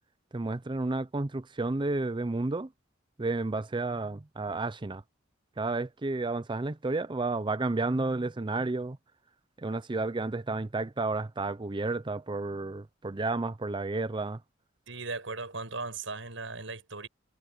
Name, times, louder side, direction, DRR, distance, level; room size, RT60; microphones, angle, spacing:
voice 1, 0.3-2.7 3.2-5.0 5.6-9.0 9.6-14.4, right 3 dB, 25° right, 0.5 m, -31 dB
voice 2, 14.9-17.1, right 3 dB, 75° right, 7.5 m, -37 dB
head